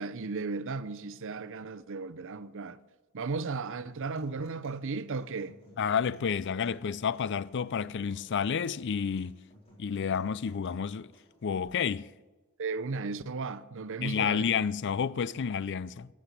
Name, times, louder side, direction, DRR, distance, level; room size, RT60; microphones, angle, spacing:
voice 1, 0.0-2.8 3.1-5.6 12.6-14.4, right 4 dB, 60° right, 0.6 m, -35 dB
Human voice / Acoustic guitar, 3.6-11.6, equal, 25° left, 4.5 m, -61 dB
voice 2, 5.8-9.4 9.8-11.1 11.4-12.1 14.0-16.1, left 7 dB, 55° left, 0.4 m, -30 dB
14.0 x 8.6 x 7.9 m
head